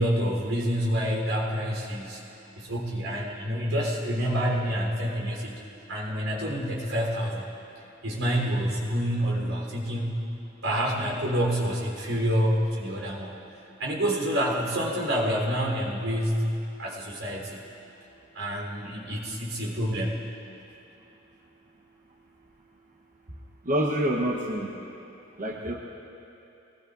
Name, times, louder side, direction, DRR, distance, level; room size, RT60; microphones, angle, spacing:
voice 1, 0.0-2.2 2.6-5.5 5.9-7.5 8.0-10.3 10.6-13.3 13.8-16.5 16.8-17.6 18.3-20.3, equal, 85° right, -3 dB, 4.0 m, -27 dB
voice 2, 23.6-24.7 25.4-25.7, right 1 dB, 40° right, -2 dB, 1.2 m, -26 dB
23.0 x 19.5 x 2.7 m, 2.8 s
head